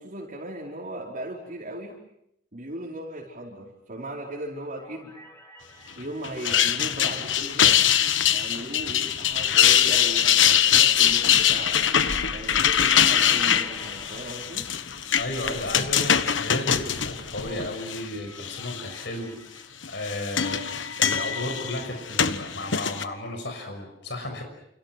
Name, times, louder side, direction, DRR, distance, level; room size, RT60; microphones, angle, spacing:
voice 1, 0.0-2.0 2.5-5.1 6.0-7.8 8.3-11.8 12.3-14.7, right 1 dB, 45° right, -3 dB, 5.0 m, -37 dB
sound 1, 4.1-8.4 8.7-8.8 12.3-15.4 17.5-20.9, equal, 15° left, 5.1 m, -52 dB
sound 2, 6.2-18.0 18.4-19.0 19.8-23.0, left 9 dB, 80° left, 1.3 m, -23 dB
sound 3, 9.3-17.7, right 1 dB, 65° right, 2.7 m, -46 dB
voice 2, 15.1-20.6 21.0-24.4, left 1 dB, 65° left, 5 dB, 6.2 m, -34 dB
29.5 x 29.0 x 6.2 m, 0.78 s
head